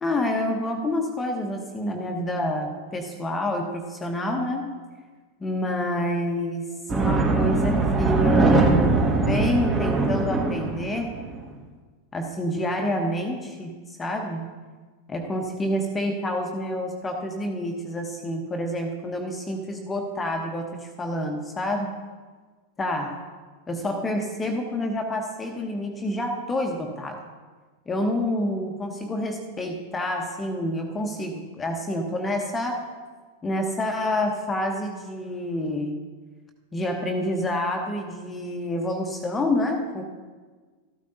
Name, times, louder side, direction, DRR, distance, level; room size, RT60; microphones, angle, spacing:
voice 1, 0.0-4.7 5.4-11.2 12.1-14.5 15.1-21.9 22.8-23.2 23.7-27.2 27.9-32.9 33.4-36.0 36.7-40.0, left 1 dB, 15° left, 3 dB, 1.1 m, -28 dB
sound 1, 6.9-11.4, right 3 dB, 20° right, 1.6 m, -21 dB
14.0 x 12.5 x 2.8 m, 1.4 s
figure-of-eight pair, 90°, 0 cm